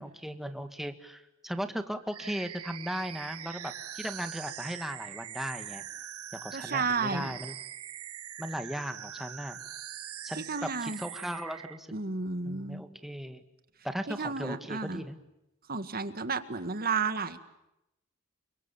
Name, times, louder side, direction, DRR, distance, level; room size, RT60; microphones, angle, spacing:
voice 1, 0.0-5.8 6.3-7.6 8.4-9.6 10.2-11.9 12.4-13.4 13.8-15.2, equal, ahead, 8 dB, 1.9 m, -37 dB
sound 1, 2.1-11.8, right 11 dB, 85° right, 1.4 m, -43 dB
voice 2, 6.5-7.4 10.4-11.0 11.9-12.8 14.1-15.0 15.7-17.4, right 4 dB, 45° right, 10 dB, 1.9 m, -32 dB
29.0 x 24.5 x 7.2 m, 0.87 s
head